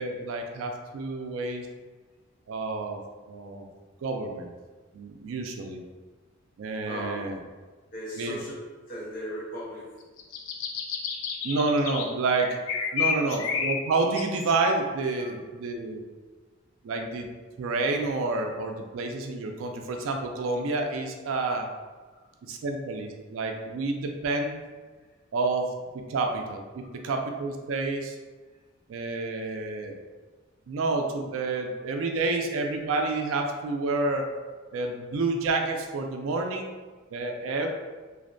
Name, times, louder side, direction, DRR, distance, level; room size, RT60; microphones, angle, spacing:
voice 1, 0.0-1.7 2.5-3.0 3.3-3.7 4.0-4.5 4.9-5.8 6.6-7.4 8.2-8.4 11.4-12.6 12.9-16.0 16.8-17.3 17.6-21.7 22.5-24.6 25.3-25.7 26.1-28.2 28.9-30.0 30.7-34.3 34.7-36.7 37.1-37.7, right 3 dB, 90° right, 3 dB, 0.4 m, -29 dB
voice 2, 6.9-7.2 7.9-8.5 8.9-9.9 12.9-13.1 15.2-15.4 22.1-22.2 34.7-34.8, equal, 45° left, -8 dB, 0.9 m, -37 dB
sound 1, 10.0-12.1 12.4-14.7, left 6 dB, 90° left, 0.4 m, -31 dB
2.5 x 2.1 x 2.5 m, 1.3 s
head